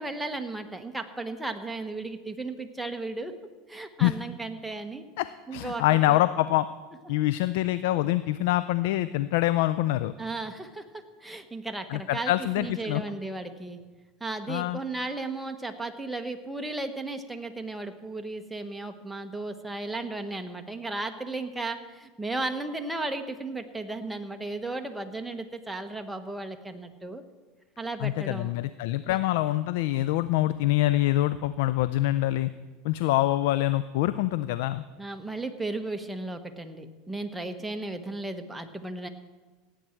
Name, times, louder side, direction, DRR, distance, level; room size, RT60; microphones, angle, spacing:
voice 1, 0.0-3.3 3.7-5.1 5.5-6.2 10.2-13.8 14.2-27.2 27.8-28.5 29.0-29.2 35.0-39.1, right 2 dB, 5° right, 5 dB, 1.2 m, -35 dB
voice 2, 5.5-6.7 7.1-10.1 11.9-13.0 14.5-14.8 28.0-32.5 32.8-34.8, left 15 dB, 75° left, 14 dB, 0.4 m, -25 dB
16.5 x 8.7 x 4.5 m, 1.3 s
hypercardioid pair, 95°, 0 cm